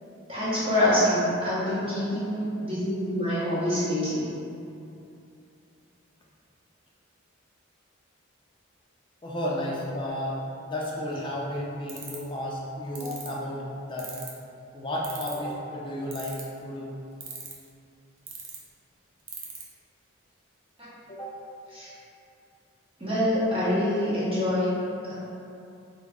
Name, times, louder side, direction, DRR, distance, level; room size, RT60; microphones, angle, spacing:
voice 1, 0.3-4.3 21.7-21.9 23.0-24.7, left 1 dB, 25° right, -11 dB, 0.9 m, -25 dB
voice 2, 9.2-14.1 14.7-16.9 21.1-21.3, left 1 dB, 25° left, -4 dB, 0.4 m, -33 dB
sound 1, 11.9-12.3 13.0-13.3 14.0-14.4 15.0-15.5 16.1-16.6 17.2-17.7 18.3-18.6 19.3-19.6, right 8 dB, 70° right, 0.5 m, -38 dB
3.4 x 2.0 x 3.4 m, 2.6 s
head